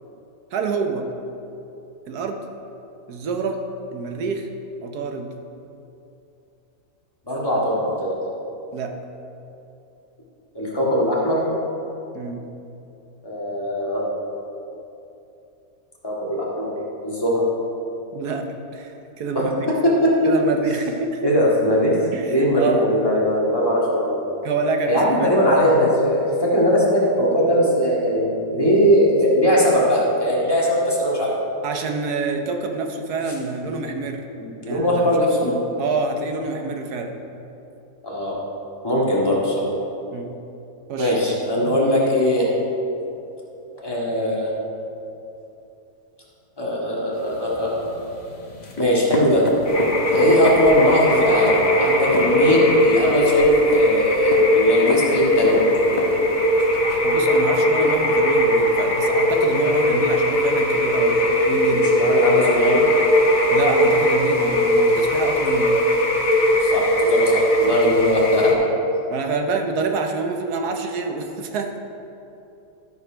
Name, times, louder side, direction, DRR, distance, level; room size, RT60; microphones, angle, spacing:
voice 1, 0.5-1.1 2.1-2.4 3.1-3.6 3.9-4.5 4.8-5.3 8.7-8.9 12.1-12.4 18.1-19.7 20.2-21.3 22.1-22.9 24.4-25.4 31.6-34.2 34.7-37.1 40.1-40.3 40.9-41.1 57.0-62.0 63.5-65.8 67.7-68.1 69.1-71.8, right 4 dB, 75° right, 4 dB, 1.4 m, -27 dB
voice 2, 7.3-8.1 10.5-11.4 13.2-14.0 16.0-16.8 17.0-17.4 19.3-19.4 19.8-20.3 21.2-24.2 24.9-31.3 34.4-35.5 38.0-38.3 38.8-39.6 41.0-42.5 43.8-44.5 46.6-47.8 48.8-49.4 50.1-55.6 61.7-62.8 66.6-68.7, equal, 15° left, -6 dB, 1.9 m, -20 dB
sound 1, 47.1-57.0, left 2 dB, 30° left, 1.0 m, -33 dB
sound 2, 49.7-68.5, left 1 dB, 90° left, 1.9 m, -19 dB
13.0 x 5.4 x 5.1 m, 2.9 s
omnidirectional pair, 1.7 m